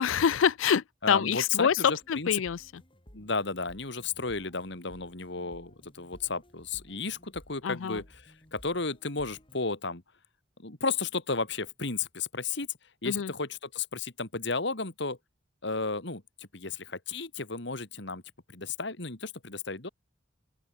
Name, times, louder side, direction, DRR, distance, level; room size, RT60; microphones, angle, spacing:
voice 1, 0.0-2.8 7.6-8.0 13.0-13.3, left 7 dB, 85° left, 0.4 m, -26 dB
voice 2, 1.0-2.3 3.1-10.0 10.6-12.7 13.0-15.2 15.6-18.2 18.5-19.9, left 4 dB, 60° left, 2.5 m, -33 dB
sound 1, 2.0-9.6, equal, 25° left, 4.1 m, -56 dB
open air
head